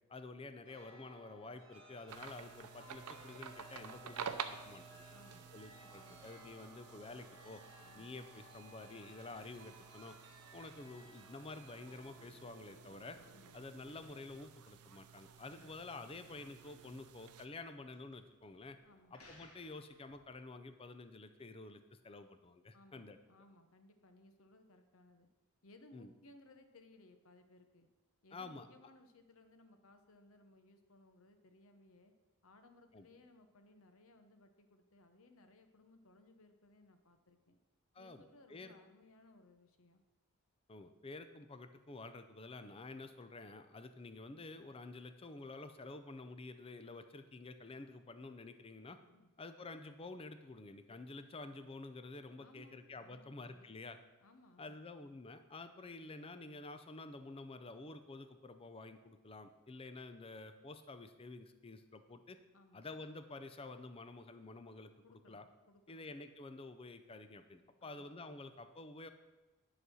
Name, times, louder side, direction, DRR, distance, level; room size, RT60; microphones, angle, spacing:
voice 1, 0.1-5.1 5.5-7.6 7.9-10.2 10.5-13.2 13.5-18.8 19.1-23.2 25.9-26.1 28.3-28.7 32.9-33.1 37.9-38.7 40.7-49.0 49.4-54.0 54.6-62.4 62.7-65.4 65.9-69.1, left 3 dB, 25° left, 10 dB, 0.5 m, -50 dB
Chime, 0.6-14.9, right 1 dB, 25° right, 2.0 m, -60 dB
sound 1, 2.1-17.5, right 7 dB, 85° right, 0.6 m, -51 dB
voice 2, 5.1-5.5 6.0-6.3 7.8-8.1 13.3-13.6 15.5-15.7 18.8-19.2 22.7-25.3 25.6-27.9 28.2-32.1 32.4-37.6 38.0-40.0 49.1-49.3 52.4-53.9 54.2-54.8 62.5-62.9 65.0-66.1 67.8-68.1, left 2 dB, 65° left, 8 dB, 0.9 m, -63 dB
sound 2, 11.5-20.3, equal, 85° left, 1.6 m, -65 dB
11.0 x 4.1 x 6.2 m, 1.1 s
head